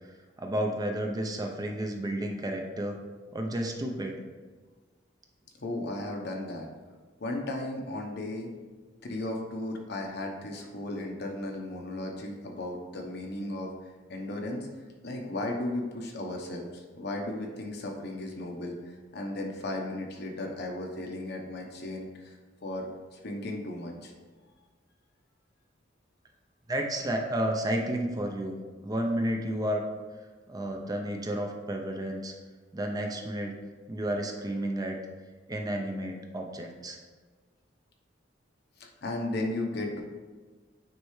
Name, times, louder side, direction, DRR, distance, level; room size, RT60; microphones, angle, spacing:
voice 1, 0.0-3.0 3.3-4.2 26.7-29.8 30.5-32.3 32.7-33.5 33.9-35.0 35.5-37.0, right 1 dB, 20° right, 2 dB, 0.6 m, -31 dB
voice 2, 5.6-6.7 7.2-8.5 9.0-13.7 14.1-14.7 15.0-22.4 22.6-24.1 38.8-40.0, left 1 dB, 60° left, 1 dB, 1.0 m, -35 dB
9.2 x 3.3 x 3.2 m, 1.4 s
head